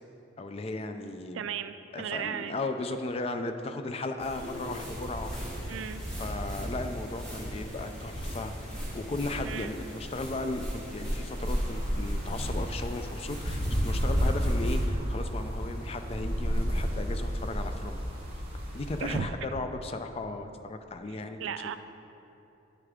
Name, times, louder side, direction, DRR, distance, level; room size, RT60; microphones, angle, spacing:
voice 1, 0.4-1.5 1.9-5.8 6.2-18.0 18.7-21.8, left 2 dB, 30° left, 7 dB, 0.4 m, -36 dB
voice 2, 1.3-2.6 5.7-6.0 9.4-9.7 19.0-19.4 21.1-21.8, right 8 dB, 75° right, 11 dB, 0.3 m, -35 dB
sound 1, 4.2-14.8, equal, 5° left, 1.6 m, -33 dB
sound 2, 11.3-19.2, equal, 30° right, 1.4 m, -34 dB
10.0 x 6.7 x 3.6 m, 2.9 s
head